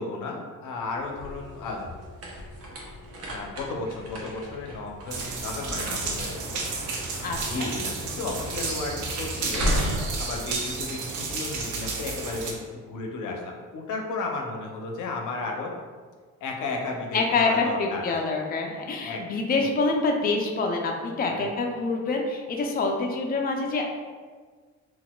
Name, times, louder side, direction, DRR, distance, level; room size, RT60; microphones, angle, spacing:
voice 1, 0.0-1.9 3.2-6.6 7.5-9.7 10.2-15.7 16.4-18.2 19.0-19.2 19.6-19.7 21.3-21.5, left 3 dB, 80° left, 2 dB, 0.6 m, -34 dB
sound 1, 0.8-11.5, equal, 55° right, 0.8 m, -35 dB
sound 2, 5.1-12.5, right 4 dB, 90° right, 0.6 m, -32 dB
voice 2, 7.2-7.7 17.1-24.0, left 3 dB, 30° left, 1 dB, 0.4 m, -26 dB
4.0 x 2.4 x 2.2 m, 1.5 s
cardioid pair, 90°, 30 cm